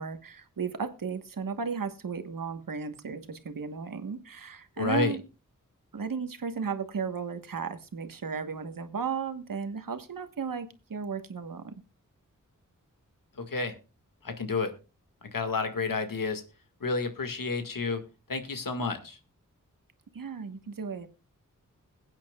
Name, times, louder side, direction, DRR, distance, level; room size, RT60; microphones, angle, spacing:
voice 1, 0.0-5.2 5.9-11.8 20.1-21.1, right 5 dB, 85° right, 9 dB, 1.3 m, -35 dB
voice 2, 4.8-5.2 13.4-13.7 14.2-14.7 15.3-16.4 16.8-18.0 18.3-19.2, left 4 dB, 90° left, 7 dB, 1.8 m, -30 dB
21.5 x 8.8 x 2.3 m, 0.30 s
wide cardioid pair, 55°, 33 cm